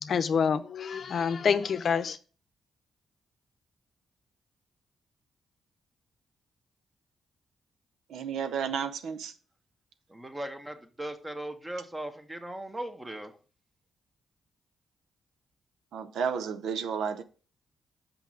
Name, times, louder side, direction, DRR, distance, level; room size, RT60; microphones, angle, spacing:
voice 1, 0.0-2.2, left 6 dB, 60° left, 0.7 m, -27 dB
voice 2, 8.1-9.3 15.9-17.2, right 6 dB, 85° right, 0.7 m, -32 dB
voice 3, 10.1-13.3, right 1 dB, 15° right, 1.5 m, -38 dB
5.8 x 5.4 x 6.0 m
supercardioid pair, 60°, 0 cm